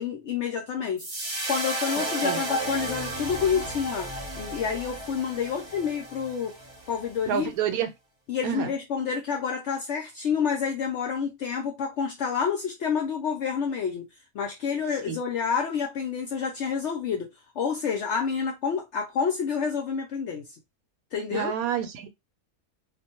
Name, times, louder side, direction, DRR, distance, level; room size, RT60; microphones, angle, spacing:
voice 1, 0.0-6.6 6.9-7.5 8.3-14.0 14.3-17.3 17.6-20.5 21.1-21.5, left 6 dB, 65° left, 0.8 m, -28 dB
sound 1, 1.0-7.4, right 1 dB, 25° right, 0.6 m, -33 dB
voice 2, 7.3-7.9 8.4-8.7 15.1-15.2 21.3-22.1, right 9 dB, 85° right, 1.1 m, -28 dB
2.5 x 2.2 x 2.8 m
omnidirectional pair, 1.5 m